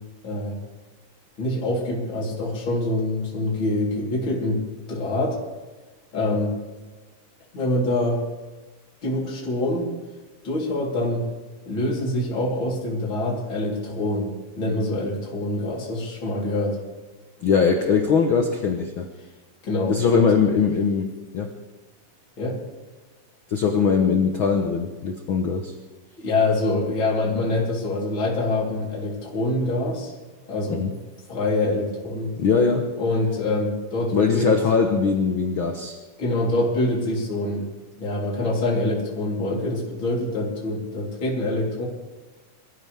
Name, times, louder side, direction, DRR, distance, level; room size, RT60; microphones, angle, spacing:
voice 1, 0.2-0.6 1.4-4.6 4.9-5.4 6.1-6.5 7.5-8.2 9.0-9.8 10.4-11.3 11.6-16.8 19.6-20.3 22.4-22.6 26.2-30.1 30.4-30.8 31.3-32.3 33.0-34.5 36.2-37.6 38.0-41.8, left 2 dB, 35° left, -5 dB, 4.3 m, -25 dB
voice 2, 17.4-19.1 19.9-21.5 23.5-25.7 30.7-31.0 32.4-32.9 34.1-36.0, left 5 dB, 80° left, 4 dB, 1.1 m, -21 dB
23.5 x 15.0 x 3.5 m, 1.2 s
omnidirectional pair, 3.9 m